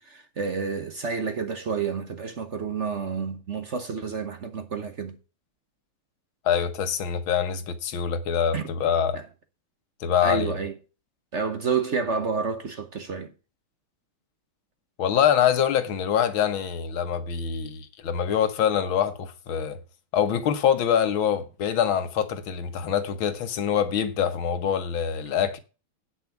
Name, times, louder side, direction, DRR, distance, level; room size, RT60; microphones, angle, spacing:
voice 1, 0.0-5.2 8.5-8.7 9.1-9.2 10.2-10.7 11.3-13.3, right 5 dB, 50° right, 0.9 m, -29 dB
voice 2, 6.4-9.2 10.0-10.6 15.0-19.8 20.1-25.6, left 8 dB, 70° left, 1.8 m, -25 dB
9.0 x 7.1 x 5.8 m
omnidirectional pair, 2.4 m